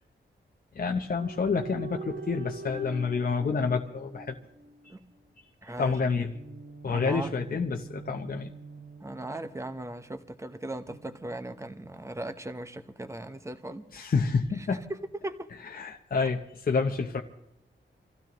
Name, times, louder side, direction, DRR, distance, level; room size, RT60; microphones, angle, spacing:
voice 1, 0.7-4.4 5.8-6.3 6.8-8.5 13.9-14.8 15.7-17.2, left 4 dB, 45° left, 3 dB, 0.8 m, -28 dB
sound 1, 1.2-4.9 6.3-10.1 10.9-12.1, right 3 dB, 55° right, 1.3 m, -43 dB
voice 2, 5.6-6.0 6.9-7.4 9.0-13.8 14.7-14.8 15.2-15.5, right 1 dB, 15° right, 9 dB, 0.9 m, -38 dB
26.0 x 15.0 x 3.0 m, 0.81 s
wide cardioid pair, 135°, 20 cm